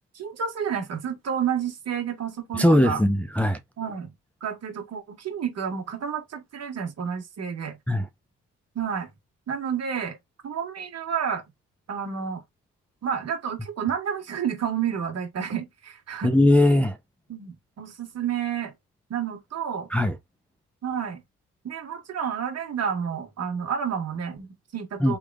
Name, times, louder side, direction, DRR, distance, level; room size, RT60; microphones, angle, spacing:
voice 1, 0.1-3.0 3.8-4.1 4.4-7.8 8.7-9.1 9.5-10.2 10.4-11.4 11.9-12.4 13.0-16.3 17.3-18.7 19.1-19.9 20.8-21.2 21.6-25.2, right 7 dB, 55° right, 1.6 m, -30 dB
voice 2, 2.5-3.6 7.9-8.1 16.2-17.0 19.9-20.2 25.0-25.2, left 1 dB, 5° left, 0.6 m, -20 dB
3.3 x 2.5 x 3.5 m
cardioid pair, 90°, 30 cm